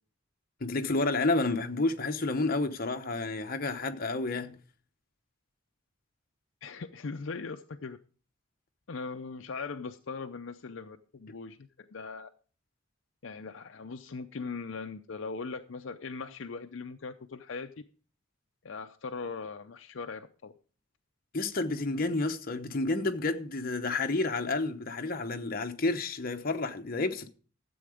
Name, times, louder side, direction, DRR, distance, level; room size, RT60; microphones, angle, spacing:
voice 1, 0.6-4.6 21.3-27.3, left 3 dB, 45° left, 0.9 m, -30 dB
voice 2, 6.6-8.0 8.9-12.3 13.2-17.7 18.6-20.5, left 4 dB, 65° left, 0.5 m, -40 dB
13.0 x 7.8 x 5.0 m
head